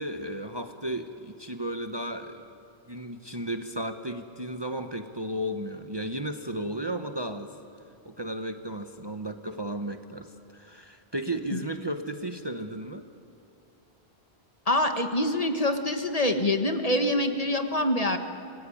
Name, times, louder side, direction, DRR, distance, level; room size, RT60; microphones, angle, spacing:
voice 1, 0.0-2.4 2.9-7.5 8.0-13.0, right 1 dB, 25° right, 7 dB, 1.0 m, -34 dB
voice 2, 14.7-18.2, left 1 dB, 35° left, 6 dB, 1.5 m, -25 dB
26.5 x 19.5 x 9.9 m, 2.6 s
omnidirectional pair, 1.1 m